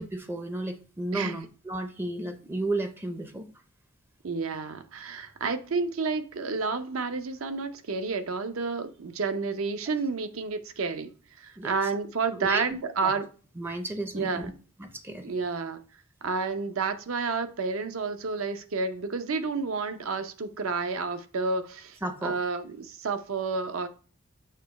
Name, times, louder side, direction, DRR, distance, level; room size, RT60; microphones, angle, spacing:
voice 1, 0.0-3.5 11.6-11.9 12.4-13.1 13.6-14.5 14.8-15.3 22.0-22.4, right 2 dB, 10° right, 0.5 m, -33 dB
voice 2, 4.2-11.1 11.4-13.2 14.1-14.5 15.2-15.8 16.2-23.9, right 4 dB, 70° right, 0.6 m, -30 dB
6.7 x 3.0 x 5.1 m
head